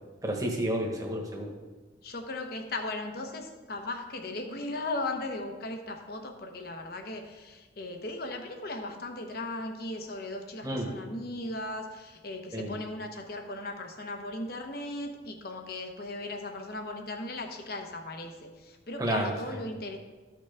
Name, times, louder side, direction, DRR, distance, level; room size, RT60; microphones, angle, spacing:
voice 1, 0.2-1.5 10.6-10.9 12.5-12.7 19.0-19.3, right 1 dB, 20° right, 1 dB, 1.3 m, -30 dB
voice 2, 2.0-20.0, left 2 dB, 55° left, 4 dB, 1.0 m, -37 dB
13.5 x 6.1 x 3.5 m, 1.3 s
head